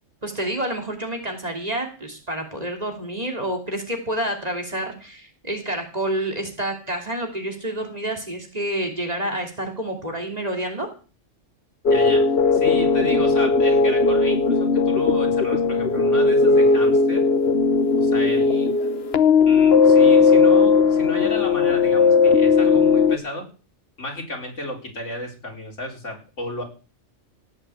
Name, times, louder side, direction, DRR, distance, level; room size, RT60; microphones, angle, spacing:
voice 1, 0.2-10.9, right 1 dB, 30° right, 3 dB, 3.2 m, -28 dB
voice 2, 11.8-17.2 18.0-18.9 19.4-23.5 24.0-26.6, left 1 dB, 75° left, 1 dB, 4.7 m, -33 dB
sound 1, 11.8-23.2, left 4 dB, 55° left, 1.1 m, -17 dB
17.5 x 6.6 x 8.4 m, 0.36 s
omnidirectional pair, 1.3 m